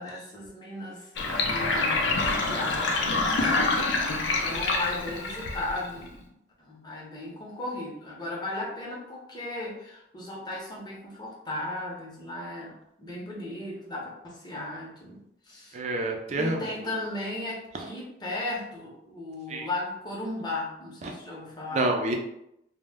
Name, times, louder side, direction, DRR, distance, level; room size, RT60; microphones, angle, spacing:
voice 1, 0.0-2.1 2.4-6.3 6.6-15.8 16.4-21.9, left 2 dB, 20° left, -4 dB, 0.6 m, -36 dB
Sink (filling or washing), 1.2-6.1, left 3 dB, 70° left, 0.4 m, -26 dB
voice 2, 15.7-16.6 19.5-19.7 21.0-21.1 21.7-22.2, right 2 dB, 35° right, 2 dB, 0.3 m, -27 dB
2.1 x 2.0 x 3.3 m, 0.81 s
head